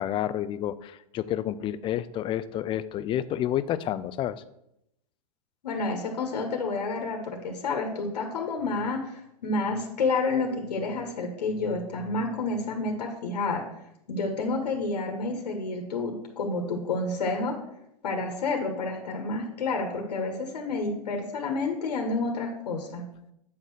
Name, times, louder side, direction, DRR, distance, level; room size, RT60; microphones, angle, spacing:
voice 1, 0.0-4.4, left 11 dB, 25° left, 15 dB, 0.4 m, -29 dB
voice 2, 5.6-13.6 14.1-17.5 18.0-23.0, left 3 dB, 85° left, 2 dB, 1.4 m, -29 dB
8.3 x 3.9 x 6.1 m, 0.81 s
hypercardioid pair, 120°, 20 cm